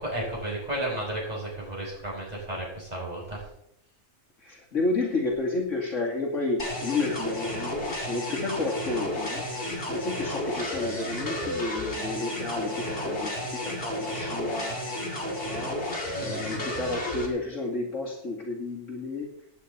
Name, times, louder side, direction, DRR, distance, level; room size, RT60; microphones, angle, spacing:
voice 1, 0.0-3.5 16.1-16.5, right 1 dB, 30° right, -4 dB, 6.3 m, -33 dB
voice 2, 4.4-14.8 15.4-19.3, left 3 dB, 65° left, -2 dB, 2.9 m, -31 dB
sound 1, 6.6-17.3, left 1 dB, 45° left, 3.2 m, -32 dB
17.5 x 9.7 x 4.1 m, 0.79 s
omnidirectional pair, 1.4 m